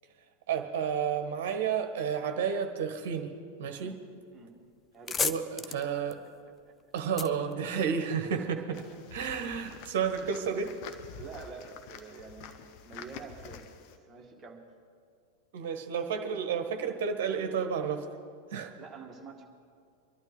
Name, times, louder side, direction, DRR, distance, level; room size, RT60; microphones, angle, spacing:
voice 1, 0.5-3.3 3.6-4.0 5.2-6.2 6.9-8.8 9.1-10.7 15.5-18.0 18.5-18.7, right 7 dB, 55° right, 6 dB, 1.3 m, -31 dB
sound 1, 4.3-4.5 4.8-8.4, left 5 dB, 15° left, 0.5 m, -36 dB
voice 2, 4.9-5.3 5.7-5.8 7.6-7.7 8.2-8.8 11.1-14.6 18.8-19.4, right 4 dB, 20° right, 0 dB, 2.0 m, -48 dB
sound 2, 8.7-14.0, left 7 dB, 45° left, 0.9 m, -48 dB
23.5 x 12.0 x 3.9 m, 2.2 s
figure-of-eight pair, 90°, 0 cm